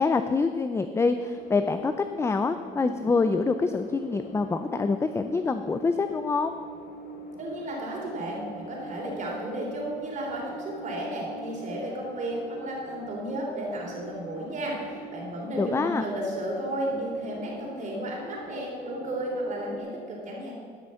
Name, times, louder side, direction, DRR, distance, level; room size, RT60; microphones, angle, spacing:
voice 1, 0.0-6.6 15.5-16.0, left 4 dB, 15° left, 9 dB, 0.4 m, -26 dB
sound 1, 1.4-19.8, equal, 70° left, 1.3 m, -44 dB
voice 2, 7.4-20.5, right 1 dB, 45° right, -1 dB, 3.4 m, -33 dB
12.5 x 6.2 x 7.0 m, 2.1 s
cardioid pair, 110°, 17 cm